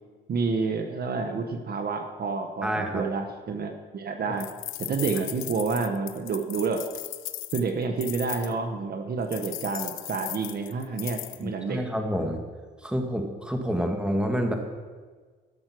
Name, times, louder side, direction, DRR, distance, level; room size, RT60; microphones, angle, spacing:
voice 1, 0.3-4.5 4.8-6.8 7.5-11.8 13.7-13.8, right 4 dB, 50° right, 6 dB, 1.0 m, -29 dB
voice 2, 2.6-3.0 5.1-5.2 11.4-12.4 12.8-14.6, equal, 5° right, 3 dB, 1.6 m, -28 dB
sound 1, 4.4-8.5 9.3-11.4, left 15 dB, 90° left, 0.5 m, -37 dB
12.5 x 6.3 x 6.1 m, 1.5 s
cardioid pair, 90°, 20 cm